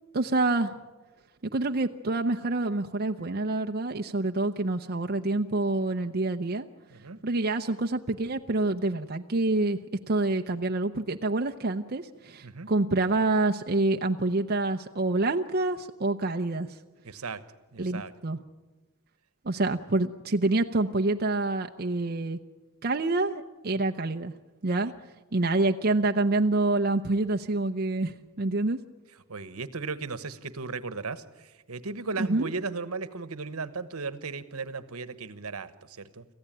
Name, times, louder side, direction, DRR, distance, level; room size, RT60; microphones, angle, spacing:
voice 1, 0.1-0.8 1.5-6.7 7.2-9.8 10.1-16.7 17.8-18.4 19.4-22.4 22.8-24.3 24.6-24.9 25.3-28.8 32.2-32.5, right 2 dB, 45° right, 4 dB, 0.7 m, -27 dB
voice 2, 6.9-7.2 12.4-12.7 17.0-17.4 17.7-18.1 29.3-36.2, right 4 dB, 80° right, 13 dB, 1.2 m, -36 dB
26.5 x 15.0 x 8.9 m, 1.2 s
head